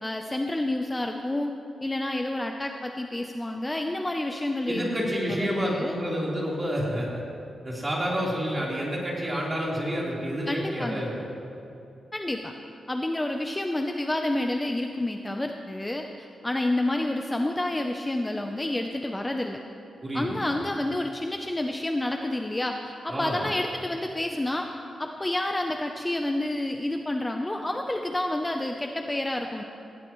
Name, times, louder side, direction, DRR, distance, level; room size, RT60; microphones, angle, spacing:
voice 1, 0.0-1.5 1.8-6.0 10.5-11.1 12.1-12.5 12.9-19.6 20.1-24.7 25.0-29.6, left 1 dB, 15° left, 3 dB, 0.6 m, -29 dB
voice 2, 4.7-7.2 7.6-11.1 20.0-20.5 23.1-23.4, equal, 25° right, -5 dB, 3.8 m, -29 dB
18.5 x 16.0 x 3.1 m, 2.7 s
wide cardioid pair, 115°, 0 cm